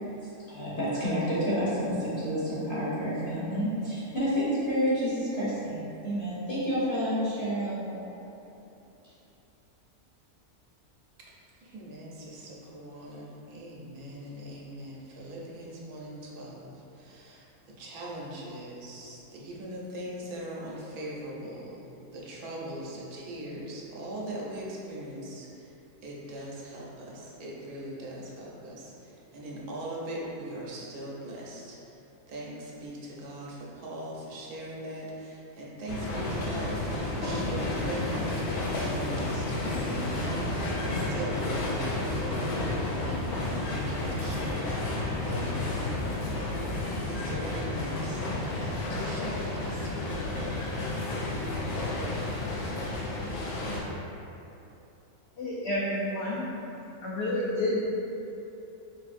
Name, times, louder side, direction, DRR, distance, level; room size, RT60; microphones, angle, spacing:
voice 1, 0.2-8.1, equal, 45° left, -11 dB, 0.9 m, -29 dB
voice 2, 11.6-16.7 17.0-17.4 17.8-21.9 22.1-25.5 26.0-31.8 32.3-42.5 43.1-44.8 45.1-46.3 47.1-50.1, right 1 dB, 85° right, -4 dB, 1.2 m, -40 dB
sound 1, 35.9-53.8, left 2 dB, 85° left, 1.2 m, -31 dB
voice 3, 55.4-56.4 57.0-57.8, left 1 dB, 70° left, -7 dB, 0.6 m, -29 dB
4.7 x 2.6 x 2.4 m, 2.9 s
omnidirectional pair, 1.6 m